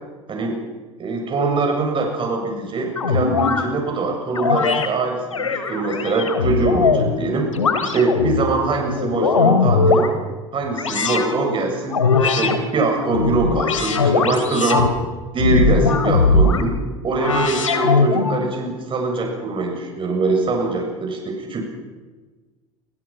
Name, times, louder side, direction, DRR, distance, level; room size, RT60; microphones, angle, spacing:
voice 1, 0.3-0.6 1.0-7.5 7.9-10.1 10.5-12.0 12.4-14.9 15.3-16.7 17.0-21.6, right 3 dB, 30° right, 2 dB, 7.1 m, -23 dB
sound 1, 3.0-3.6 4.4-4.9 5.3-7.1 7.5-8.4 8.9-10.1 10.8-11.3 11.9-12.6 13.0-14.9 15.4-16.6 17.2-18.4, left 4 dB, 85° left, 2.9 m, -19 dB
29.0 x 25.0 x 5.9 m, 1.3 s
figure-of-eight pair, 75°, 16 cm